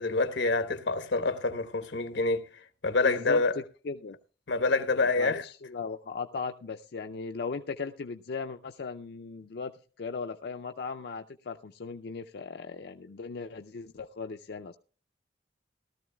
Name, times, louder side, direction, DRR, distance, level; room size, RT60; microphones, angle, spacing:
voice 1, 0.0-3.5 4.5-5.4, left 3 dB, 90° left, 1.0 m, -27 dB
voice 2, 3.0-3.4 3.8-4.2 5.0-9.7 10.0-14.8, left 4 dB, 65° left, 0.4 m, -37 dB
18.5 x 13.0 x 2.3 m
head